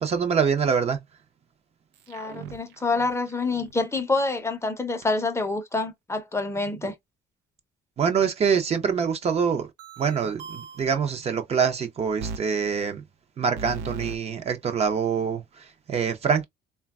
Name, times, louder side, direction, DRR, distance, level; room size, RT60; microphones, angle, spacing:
voice 1, 0.0-1.0 8.0-9.7 10.0-13.0 13.4-16.4, right 6 dB, 40° right, 0.6 m, -25 dB
sound 1, 1.9-3.7 9.8-11.0 12.2-12.4 13.6-14.2, right 4 dB, 85° right, 0.5 m, -38 dB
voice 2, 2.1-6.9, left 3 dB, 15° left, 0.6 m, -27 dB
3.2 x 2.2 x 2.3 m
cardioid pair, 110°, 17 cm